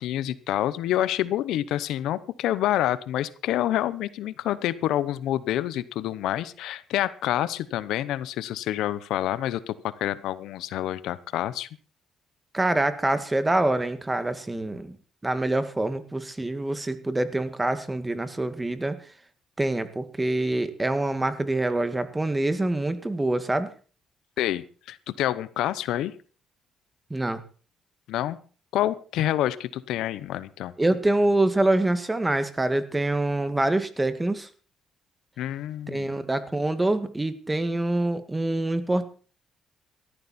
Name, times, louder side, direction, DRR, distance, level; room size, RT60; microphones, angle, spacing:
voice 1, 0.0-11.7 24.4-26.1 28.1-28.4 28.7-30.7 35.4-36.1, left 13 dB, 85° left, 17 dB, 0.9 m, -27 dB
voice 2, 12.5-15.0 15.2-19.0 19.6-23.7 27.1-27.4 30.8-34.5 35.9-39.0, right 2 dB, 15° right, 11 dB, 1.8 m, -25 dB
18.0 x 13.5 x 4.3 m, 0.39 s
cardioid pair, 90°, 0 cm